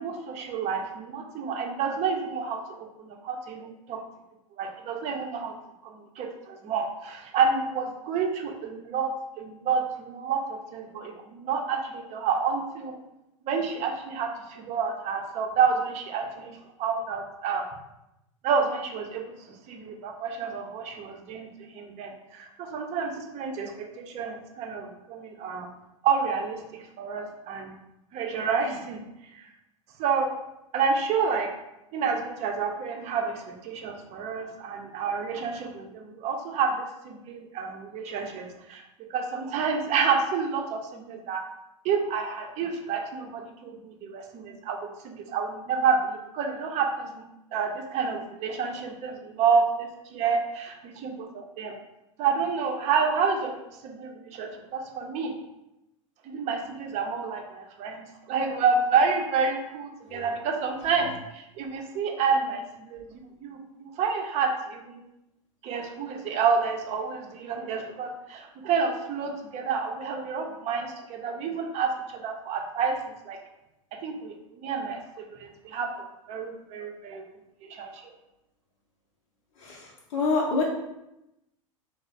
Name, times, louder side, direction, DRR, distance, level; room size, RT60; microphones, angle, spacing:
voice 1, 0.0-4.0 4.6-5.5 5.8-9.1 9.4-13.0 13.5-16.5 16.8-17.7 18.4-19.3 19.7-25.7 26.0-27.7 28.1-29.0 30.0-30.3 30.7-31.5 31.9-38.8 39.1-41.4 41.8-47.2 47.5-51.7 52.2-53.6 53.8-55.3 56.2-65.0 65.6-73.0 73.3-73.4 73.9-75.0 75.3-77.2 77.7-78.1, right 5 dB, 40° right, 3 dB, 0.6 m, -29 dB
voice 2, 79.6-80.6, left 3 dB, 60° left, -5 dB, 0.6 m, -27 dB
3.2 x 2.0 x 3.8 m, 0.89 s
hypercardioid pair, 85°, 17 cm